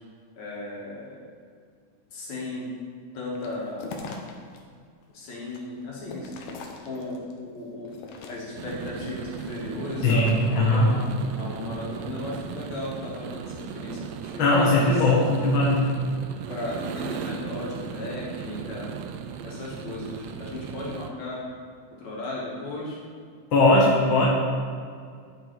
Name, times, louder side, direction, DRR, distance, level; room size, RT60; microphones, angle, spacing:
voice 1, 0.4-1.3 2.1-2.7 3.1-3.9 5.1-6.3 6.8-7.9 8.3-11.1 11.4-14.9 16.5-18.9 19.4-21.4 21.9-23.0, left 2 dB, 65° left, -5 dB, 3.1 m, -35 dB
sound 1, 3.3-4.6 5.0-7.3 7.8-8.7 9.2-10.6, left 4 dB, 85° left, 2.5 m, -41 dB
sound 2, 8.6-21.1, right 7 dB, 80° right, 1.6 m, -37 dB
voice 2, 10.0-10.9 14.4-15.8 23.5-24.3, left 2 dB, 50° left, -4 dB, 1.9 m, -19 dB
11.0 x 5.8 x 4.6 m, 2.1 s
omnidirectional pair, 3.5 m